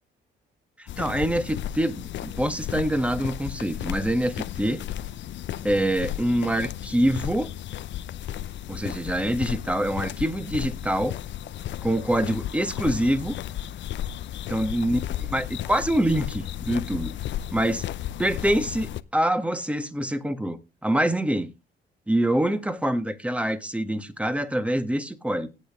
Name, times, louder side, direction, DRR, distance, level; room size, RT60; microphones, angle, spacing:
voice 1, 0.8-4.8 5.6-7.5 8.7-11.2 11.8-13.4 14.5-17.1 17.5-17.8 18.2-21.5 22.1-25.5, right 1 dB, 5° right, 1.4 m, -25 dB
sound 1, 0.9-19.0, left 12 dB, 70° left, 0.7 m, -34 dB
17.0 x 6.5 x 3.6 m
cardioid pair, 90°, 20 cm